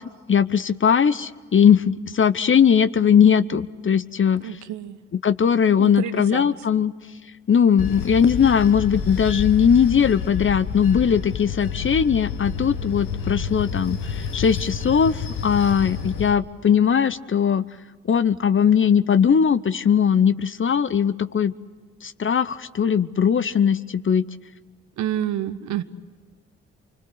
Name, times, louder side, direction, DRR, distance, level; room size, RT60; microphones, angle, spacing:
voice 1, 0.3-4.4 5.2-6.9 7.5-17.6 18.0-21.5 22.0-24.2, left 7 dB, 40° left, 15 dB, 0.8 m, -19 dB
voice 2, 4.4-5.0 5.8-6.6 25.0-25.8, right 11 dB, 70° right, 14 dB, 1.0 m, -28 dB
Bell / Train, 7.8-16.3, left 6 dB, 80° left, 1.4 m, -29 dB
26.5 x 24.5 x 8.0 m, 1.5 s
hypercardioid pair, 40°, 30 cm